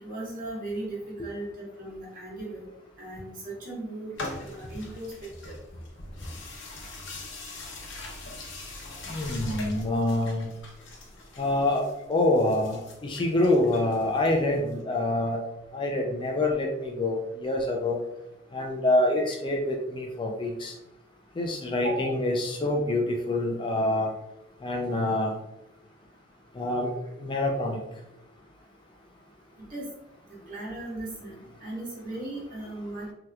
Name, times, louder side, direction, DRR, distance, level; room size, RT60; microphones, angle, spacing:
voice 1, 0.0-2.6 3.0-4.1 4.4-5.1 5.4-5.5 19.1-19.3 21.8-22.1 29.7-29.9 30.5-33.1, right 2 dB, 45° right, -6 dB, 1.4 m, -37 dB
sound 1, 4.1-14.7, left 2 dB, 85° left, 0.7 m, -42 dB
voice 2, 9.1-10.5 11.4-15.4 15.7-18.0 18.5-20.7 21.4-24.1 24.6-25.4 26.6-26.9 27.2-27.8, left 2 dB, 25° left, 1 dB, 0.3 m, -26 dB
3.3 x 2.8 x 2.3 m, 0.89 s
head